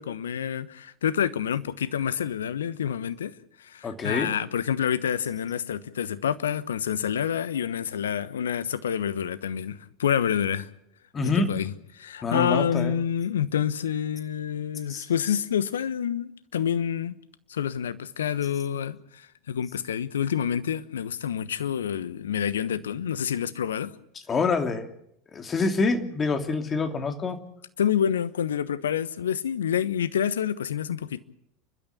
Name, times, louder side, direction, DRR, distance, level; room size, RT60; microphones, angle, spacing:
voice 1, 0.0-3.3 3.6-10.7 11.2-17.1 17.5-23.9 27.8-31.2, left 8 dB, 75° left, 1.1 m, -28 dB
voice 2, 3.8-4.3 11.1-11.5 12.2-13.0 14.9-15.0 24.3-24.9 25.3-27.4, left 4 dB, 25° left, 2.8 m, -26 dB
30.0 x 12.5 x 8.6 m
figure-of-eight pair, 80°, 0 cm